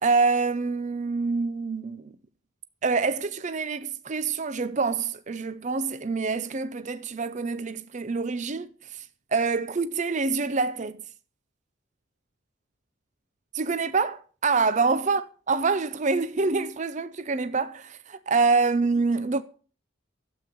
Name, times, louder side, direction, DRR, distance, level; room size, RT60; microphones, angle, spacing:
voice 1, 0.0-2.0 2.8-8.7 9.3-11.0 13.5-19.4, right 4 dB, 35° right, 0.5 m, -26 dB
12.5 x 8.2 x 6.7 m
head